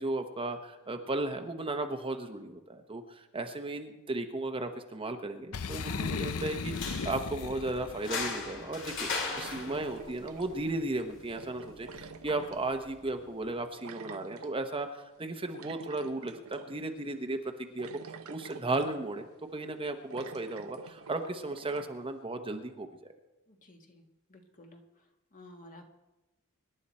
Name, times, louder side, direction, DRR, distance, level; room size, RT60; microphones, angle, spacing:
voice 1, 0.0-23.1, right 2 dB, 25° right, 5 dB, 1.0 m, -35 dB
Boom, 5.5-8.3, left 5 dB, 75° left, 0.7 m, -36 dB
voice 2, 6.1-6.5 23.5-25.0 25.3-25.9, equal, 40° left, 3 dB, 1.8 m, -51 dB
sound 1, 6.6-13.6, left 4 dB, 60° left, 2.4 m, -40 dB
sound 2, 7.9-8.0 9.3-10.8 11.3-13.1 13.8-14.6 15.5-16.8 17.2-17.3 17.8-19.2 19.6-19.7 20.1-21.9, right 5 dB, 70° right, 0.8 m, -47 dB
25.0 x 11.0 x 4.3 m, 1.0 s
head